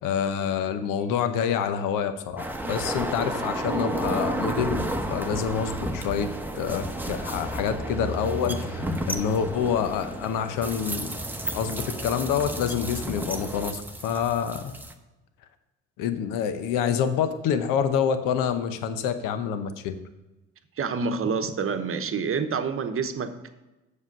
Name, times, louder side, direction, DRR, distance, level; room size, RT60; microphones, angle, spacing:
voice 1, 0.0-6.3 6.5-11.2 11.5-14.7 16.0-20.0, left 7 dB, 70° left, 10 dB, 0.8 m, -27 dB
sound 1, 2.4-14.9, right 1 dB, 5° right, 0.9 m, -32 dB
voice 2, 20.8-23.5, right 5 dB, 40° right, 8 dB, 1.0 m, -28 dB
7.3 x 6.5 x 5.2 m, 1.1 s
hypercardioid pair, 60°, 33 cm